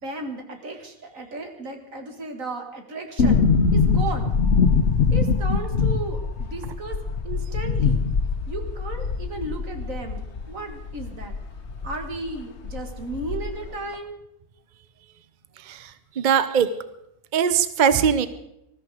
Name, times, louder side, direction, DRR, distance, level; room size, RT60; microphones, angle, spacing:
voice 1, 0.0-3.4 3.7-4.3 5.1-7.0 7.2-8.0 8.5-11.4 11.8-14.2, right 3 dB, 70° right, 5 dB, 2.4 m, -34 dB
sound 1, 3.2-12.0 12.3-12.4 12.6-13.7 13.9-14.0, left 5 dB, 55° left, 1.3 m, -23 dB
voice 2, 15.6-16.7 17.3-18.3, right 7 dB, 40° right, 12 dB, 0.8 m, -21 dB
20.0 x 13.5 x 5.0 m, 0.82 s
omnidirectional pair, 1.4 m